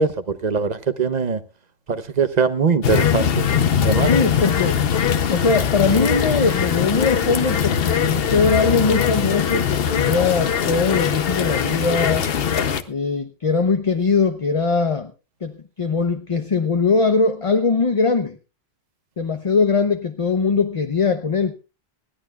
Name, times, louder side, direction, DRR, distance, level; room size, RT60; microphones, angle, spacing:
voice 1, 0.0-1.4 1.9-3.4 3.8-4.1, right 5 dB, 45° right, 0.9 m, -21 dB
sound 1, 2.8-12.8, left 8 dB, 70° left, 1.0 m, -21 dB
voice 2, 4.1-4.8 5.3-12.3 12.9-15.1 15.4-18.4 19.2-21.5, left 4 dB, 35° left, 0.7 m, -21 dB
20.0 x 14.5 x 2.3 m
omnidirectional pair, 1.0 m